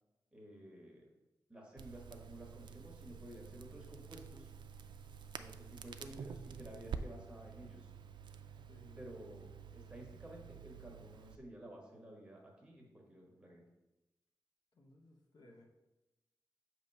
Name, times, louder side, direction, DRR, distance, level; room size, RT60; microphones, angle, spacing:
voice 1, 0.3-1.0 1.5-4.5 5.4-7.9 9.0-9.5 9.7-13.6, right 1 dB, 15° right, -2 dB, 1.3 m, -53 dB
Crackle, 1.8-11.4, right 6 dB, 85° right, 0.3 m, -49 dB
voice 2, 8.7-9.1 14.7-15.6, left 1 dB, 60° left, 0 dB, 0.9 m, -61 dB
7.0 x 2.9 x 5.4 m, 1.0 s
wide cardioid pair, 165°, 8 cm